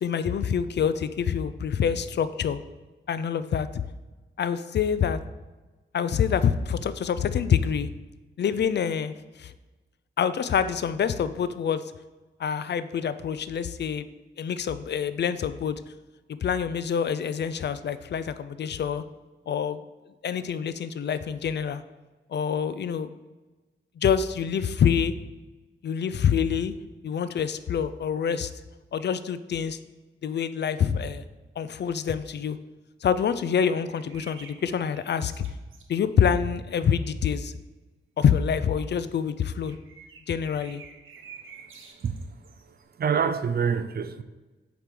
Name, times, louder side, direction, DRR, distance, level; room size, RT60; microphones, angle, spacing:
voice 1, 0.0-2.6 3.1-3.8 4.4-5.2 5.9-7.9 8.4-9.5 10.2-11.8 12.4-14.1 14.4-15.8 16.4-19.0 19.5-19.8 20.2-21.8 22.3-23.1 24.0-25.1 25.8-26.7 27.0-28.5 28.9-29.8 30.2-31.2 31.6-32.6 33.0-35.4 35.9-37.5 38.2-39.8 40.3-40.8, left 7 dB, 60° left, 0.4 m, -26 dB
sound 1, 33.6-35.9 39.6-42.8, right 6 dB, 85° right, 0.8 m, -49 dB
voice 2, 43.0-44.2, right 6 dB, 50° right, 0.5 m, -25 dB
5.1 x 4.7 x 5.9 m
wide cardioid pair, 110°, 20 cm